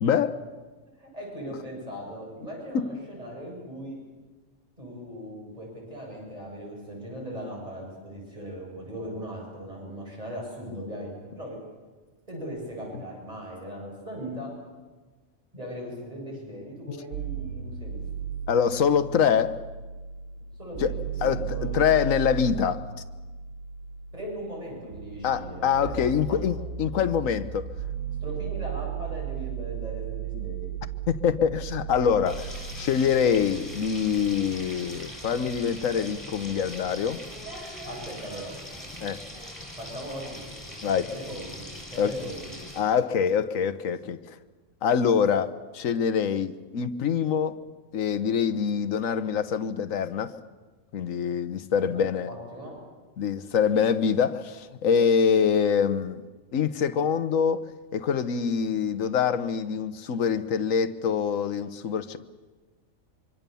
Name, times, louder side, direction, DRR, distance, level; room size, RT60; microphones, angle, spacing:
voice 1, 0.0-0.4 2.7-2.9 18.5-19.6 20.8-20.9 21.2-22.8 25.2-27.6 31.1-37.2 39.0-39.2 40.8-41.1 42.0-42.1 42.8-44.3 44.8-47.6 47.9-50.3 50.9-52.3 53.2-56.2 56.5-57.6 57.9-62.2, left 7 dB, 80° left, 1.4 m, -25 dB
voice 2, 1.0-4.0 4.8-11.6 12.3-14.5 15.5-18.3 20.6-21.8 24.1-26.4 28.2-30.7 37.9-38.5 39.8-40.4 40.9-42.5 51.8-52.0 52.3-52.7, equal, 30° right, 7.9 m, -39 dB
sound 1, 17.1-35.1, right 8 dB, 90° right, 1.4 m, -36 dB
Frying (food), 32.3-42.8, equal, 15° left, 6.6 m, -41 dB
25.5 x 25.0 x 7.0 m
omnidirectional pair, 1.4 m